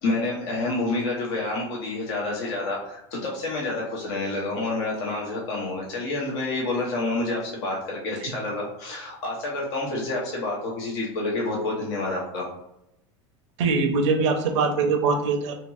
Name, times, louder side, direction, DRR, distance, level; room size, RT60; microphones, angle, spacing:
voice 1, 0.0-12.5, left 2 dB, 65° left, -3 dB, 0.8 m, -28 dB
voice 2, 13.6-15.5, right 4 dB, 75° right, 5 dB, 0.6 m, -22 dB
2.8 x 2.7 x 2.3 m, 0.81 s
supercardioid pair, 110°, 15 cm